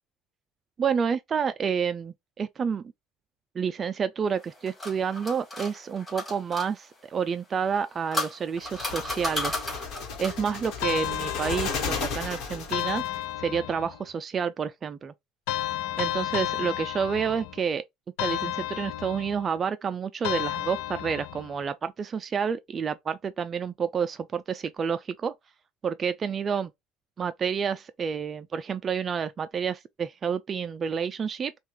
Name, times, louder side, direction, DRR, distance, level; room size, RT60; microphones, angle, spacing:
voice 1, 0.8-2.9 3.5-9.7 10.2-15.1 16.0-17.8 18.2-25.3 25.8-26.7 27.2-31.5, right 6 dB, 30° right, 0.3 m, -29 dB
sound 1, 4.4-6.7 7.7-10.5, left 2 dB, 15° left, 2.9 m, -34 dB
sound 2, 8.6-13.2, left 6 dB, 60° left, 1.4 m, -34 dB
sound 3, 10.8-12.1 12.7-14.0 15.5-17.7 18.2-19.5 20.2-21.5, left 13 dB, 85° left, 0.4 m, -32 dB
5.5 x 2.4 x 3.1 m
cardioid pair, 135°, 0 cm